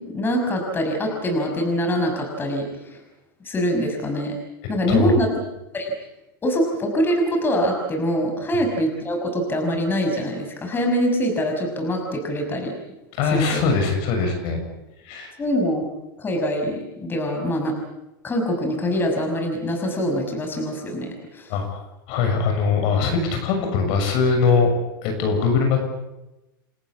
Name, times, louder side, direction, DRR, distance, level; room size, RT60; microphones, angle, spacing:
voice 1, 0.0-3.0 3.4-4.4 4.7-5.3 5.7-5.9 6.4-12.7 13.3-13.6 15.4-15.8 16.2-17.7 18.2-21.5, equal, 20° left, 3 dB, 6.0 m, -24 dB
voice 2, 4.9-5.2 13.2-14.6 15.0-15.3 21.5-24.7 25.0-25.8, left 5 dB, 55° left, 5 dB, 6.8 m, -21 dB
29.0 x 15.0 x 8.4 m, 0.97 s
supercardioid pair, 125°, 11 cm